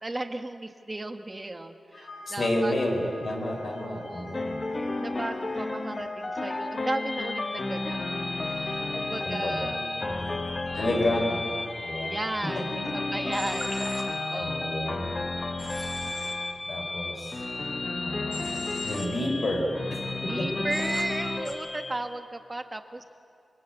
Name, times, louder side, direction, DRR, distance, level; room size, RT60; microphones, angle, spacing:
voice 1, 0.0-2.7 3.8-4.5 5.0-10.6 12.0-14.9 20.2-23.0, right 2 dB, 20° right, 7 dB, 1.5 m, -36 dB
sound 1, 1.9-14.3, left 2 dB, 75° left, 4.5 m, -45 dB
voice 2, 2.2-4.6 9.2-9.7 10.7-11.4 11.9-12.1 12.6-12.7 14.4-15.1 16.7-17.4 18.0-20.5, left 1 dB, 45° left, 1 dB, 5.7 m, -30 dB
sound 2, 4.3-21.9, left 2 dB, 30° left, 1.3 m, -32 dB
Human voice / Train, 13.3-14.0 15.6-16.3 18.3-19.1 20.7-21.0 21.4-21.5, equal, 10° left, 3.2 m, -39 dB
26.5 x 25.0 x 8.3 m, 2.4 s
wide cardioid pair, 155°, 0 cm